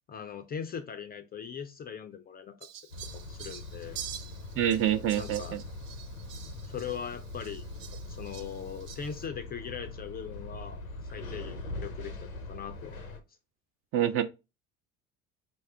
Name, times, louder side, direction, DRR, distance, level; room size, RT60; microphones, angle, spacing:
voice 1, 0.1-2.6 3.1-4.0 5.2-5.6 6.7-7.7 8.0-10.8 11.1-13.0, left 7 dB, 25° left, 0.4 m, -40 dB
Fowl, 2.6-9.3, right 9 dB, 65° right, 0.7 m, -47 dB
sound 1, 2.9-13.2, left 2 dB, 90° left, 0.6 m, -42 dB
voice 2, 4.6-5.6 13.9-14.2, right 11 dB, 35° right, 0.4 m, -26 dB
4.2 x 2.3 x 3.2 m
figure-of-eight pair, 60°, 41 cm